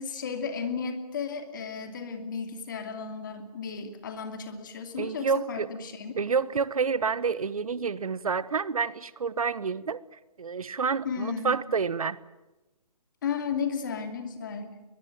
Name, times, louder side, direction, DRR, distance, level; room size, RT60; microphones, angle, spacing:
voice 1, 0.0-6.1 11.0-11.5 13.2-14.8, left 6 dB, 30° left, 7 dB, 2.7 m, -34 dB
voice 2, 5.0-5.7 6.2-12.2, right 5 dB, 65° right, 18 dB, 1.1 m, -29 dB
22.5 x 21.5 x 9.0 m, 1.0 s
hypercardioid pair, 170°, 20 cm